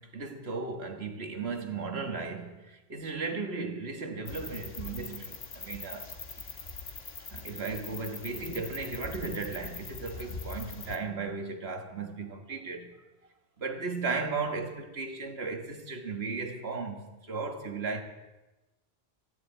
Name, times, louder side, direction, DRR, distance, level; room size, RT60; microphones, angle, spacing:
voice 1, 0.0-6.1 7.3-12.9 13.6-18.0, right 4 dB, 70° right, 1.8 m, -36 dB
sound 1, 4.3-11.0, left 4 dB, 70° left, 1.7 m, -42 dB
19.5 x 15.5 x 4.0 m
omnidirectional pair, 1.1 m